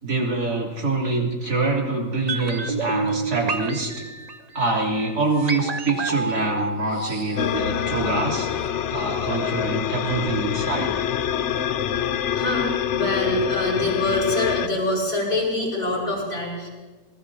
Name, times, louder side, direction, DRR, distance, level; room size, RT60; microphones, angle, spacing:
voice 1, 0.0-3.9 4.5-8.5 8.9-10.9, right 2 dB, 85° right, -2 dB, 3.6 m, -25 dB
sound 1, 2.3-8.3 8.6-8.7, right 3 dB, 35° right, 0.7 m, -30 dB
sound 2, 7.4-14.7, left 9 dB, 60° left, 0.8 m, -26 dB
voice 2, 12.3-16.7, left 1 dB, 85° left, -3 dB, 5.8 m, -25 dB
25.5 x 19.5 x 2.8 m, 1.3 s
omnidirectional pair, 1.6 m